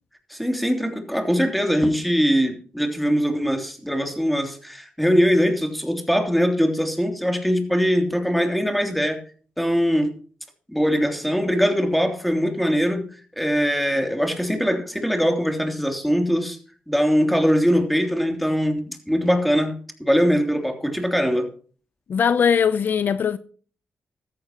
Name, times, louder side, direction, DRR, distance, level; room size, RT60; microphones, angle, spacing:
voice 1, 0.3-9.2 9.6-10.2 10.7-13.0 13.3-16.6 16.9-21.5, equal, ahead, 3.1 m, -22 dB
voice 2, 22.1-23.4, left 7 dB, 60° left, 0.6 m, -20 dB
15.5 x 13.5 x 3.0 m
cardioid pair, 80°, 4 cm